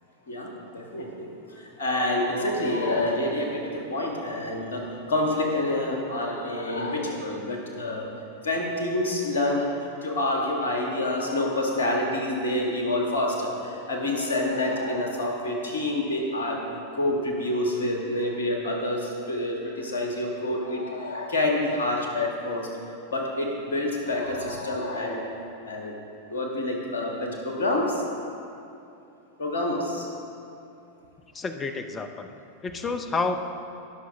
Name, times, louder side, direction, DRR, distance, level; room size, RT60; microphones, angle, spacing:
voice 1, 0.3-1.3 1.8-8.1 8.4-9.7 10.0-16.6 16.9-22.7 23.1-25.3 25.6-25.9 26.3-28.0 29.4-30.1, left 1 dB, 65° left, 0 dB, 1.6 m, -27 dB
voice 2, 31.3-32.3 32.6-33.4, left 4 dB, 20° left, 8 dB, 0.6 m, -29 dB
17.0 x 6.3 x 3.5 m, 2.7 s
figure-of-eight pair, 90°, 0 cm